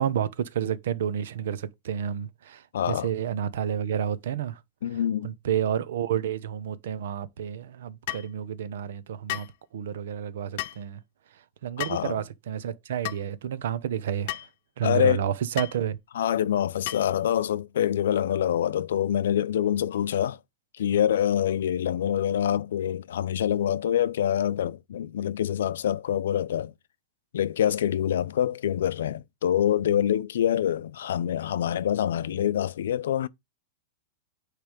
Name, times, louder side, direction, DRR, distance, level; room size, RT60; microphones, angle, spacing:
voice 1, 0.0-4.6 4.9-9.5 9.7-11.0 11.6-14.4 14.8-16.0, right 9 dB, 70° right, 0.9 m, -30 dB
voice 2, 2.7-3.1 4.8-5.3 11.9-12.2 14.8-15.2 16.1-20.4 20.8-26.7 27.3-33.3, left 10 dB, 90° left, 0.6 m, -25 dB
sound 1, 8.1-8.3 9.3-9.6 10.6-10.8 11.8-12.1 13.0-13.2 14.3-14.5 15.6-15.8 16.9-17.2, left 16 dB, 45° left, 0.4 m, -33 dB
9.4 x 3.4 x 5.1 m
supercardioid pair, 180°, 0 cm